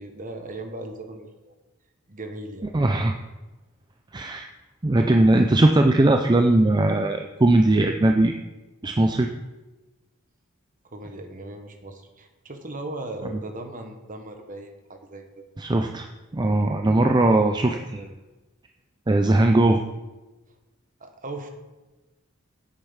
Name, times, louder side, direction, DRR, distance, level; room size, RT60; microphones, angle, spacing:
voice 1, 0.0-1.5 2.1-2.7 10.9-15.4 17.3-17.5 21.0-21.5, right 2 dB, 40° right, 6 dB, 1.3 m, -38 dB
voice 2, 2.7-3.1 4.1-4.5 4.8-8.4 8.8-9.3 15.6-16.1 16.3-18.1 19.1-19.8, right 2 dB, 20° right, 4 dB, 0.5 m, -19 dB
8.8 x 8.3 x 5.7 m, 1.1 s
head